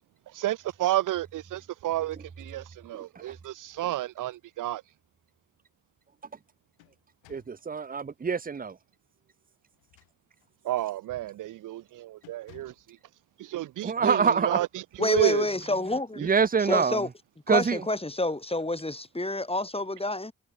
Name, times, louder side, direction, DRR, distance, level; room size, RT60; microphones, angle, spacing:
voice 1, 0.3-4.8 10.6-12.7 13.5-15.5, right 14 dB, 60° right, 0.7 m, -30 dB
sound 1, 3.6-4.3 4.8-4.9 6.3-7.7 9.7-10.6 11.1-11.3 11.6-11.9 12.2-12.9, left 21 dB, 80° left, 6.1 m, -59 dB
voice 2, 7.3-8.7 13.8-14.6 16.2-17.0 17.5-17.8, right 5 dB, 25° right, 0.9 m, -25 dB
voice 3, 15.0-16.3 16.6-17.1 17.5-20.3, left 2 dB, 15° left, 4.5 m, -28 dB
hypercardioid pair, 40°, 36 cm